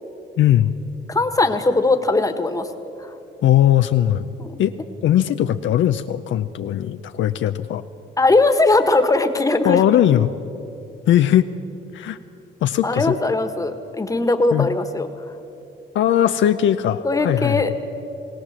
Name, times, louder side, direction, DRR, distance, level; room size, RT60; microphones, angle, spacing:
voice 1, 0.4-0.7 3.4-4.3 4.6-4.8 5.0-7.8 9.6-10.3 11.1-11.5 11.9-12.2 12.6-13.1 14.5-14.7 15.9-17.6, left 11 dB, 70° left, 9 dB, 0.6 m, -18 dB
voice 2, 1.1-2.7 3.0-3.1 4.4-4.6 8.2-9.8 12.8-15.1 17.0-17.8, left 2 dB, 15° left, 8 dB, 1.5 m, -19 dB
20.5 x 17.0 x 7.4 m, 2.9 s
cardioid pair, 90°, 20 cm